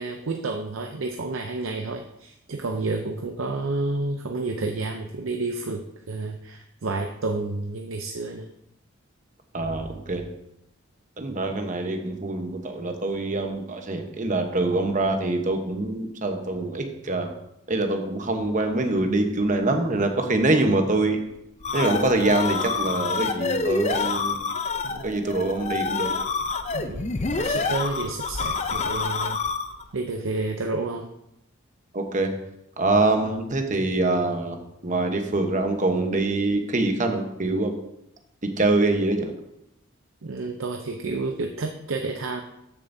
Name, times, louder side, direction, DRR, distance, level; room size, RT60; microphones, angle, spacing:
voice 1, 0.0-8.5 24.8-25.1 26.7-29.4 29.9-31.1 40.2-42.4, right 3 dB, 70° right, 4 dB, 0.6 m, -30 dB
voice 2, 9.5-10.2 11.2-17.3 17.7-21.2 21.7-24.4 25.0-26.1 31.9-32.3 32.8-34.6 34.8-37.8 38.6-39.3, right 2 dB, 35° right, 4 dB, 1.0 m, -24 dB
sound 1, 21.4-29.9, left 4 dB, 35° left, 0.5 m, -27 dB
14.0 x 7.0 x 2.7 m, 0.84 s
head